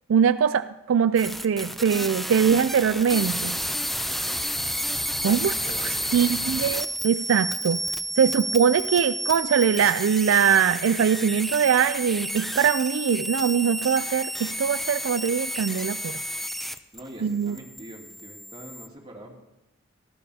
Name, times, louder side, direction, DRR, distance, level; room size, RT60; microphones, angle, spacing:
voice 1, 0.1-3.6 5.2-7.8 8.2-16.2 17.2-17.6, right 7 dB, 80° right, 12 dB, 0.4 m, -22 dB
sound 1, 1.2-17.0 17.3-18.9, equal, ahead, 0.5 m, -31 dB
voice 2, 5.3-6.2 16.7-19.4, right 1 dB, 25° right, -2 dB, 2.7 m, -44 dB
17.5 x 14.0 x 2.8 m, 0.98 s
head